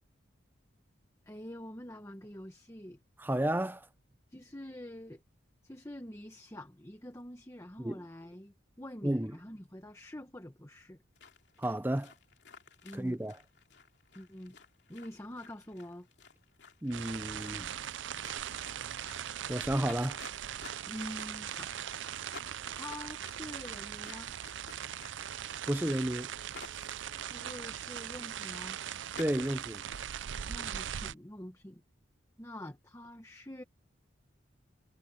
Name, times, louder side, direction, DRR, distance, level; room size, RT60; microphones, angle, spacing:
voice 1, 1.2-3.0 4.3-5.2 5.6-11.0 12.8-13.2 14.1-14.6 14.9-16.1 20.9-21.7 22.8-24.3 27.3-28.8 30.5-31.8 32.4-33.6, left 1 dB, 15° left, 1.2 m, -46 dB
voice 2, 3.2-3.9 7.8-8.0 9.0-9.3 11.6-12.1 12.9-13.4 16.8-17.7 19.5-20.2 25.7-26.3 29.2-29.8, right 1 dB, 10° right, 0.7 m, -32 dB
sound 1, 11.1-29.2, left 5 dB, 65° left, 3.0 m, -55 dB
sound 2, 16.9-31.1, right 9 dB, 75° right, 0.5 m, -40 dB
head